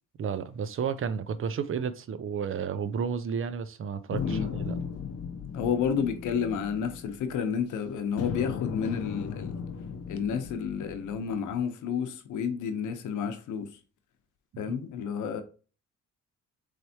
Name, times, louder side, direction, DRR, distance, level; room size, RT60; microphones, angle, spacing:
voice 1, 0.2-4.8, right 7 dB, 45° right, 0.5 m, -32 dB
sound 1, 4.1-7.7 8.2-11.5, left 7 dB, 55° left, 0.6 m, -36 dB
voice 2, 4.2-4.5 5.5-9.6 10.1-13.7 14.6-15.4, left 7 dB, 80° left, 0.8 m, -31 dB
4.4 x 3.2 x 2.7 m
cardioid pair, 90°, 30 cm